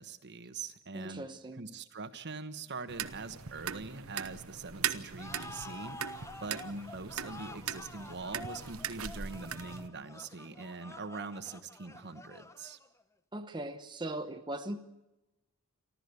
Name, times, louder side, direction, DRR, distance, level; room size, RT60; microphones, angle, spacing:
voice 1, 0.0-12.8, right 4 dB, 55° right, 11 dB, 1.2 m, -43 dB
voice 2, 0.9-1.7 13.3-14.8, right 1 dB, 20° right, 5 dB, 1.0 m, -39 dB
sound 1, 2.9-9.9, right 8 dB, 70° right, 1.0 m, -40 dB
sound 2, 5.2-13.0, left 2 dB, 15° left, 0.9 m, -49 dB
29.0 x 12.5 x 8.3 m, 0.99 s
head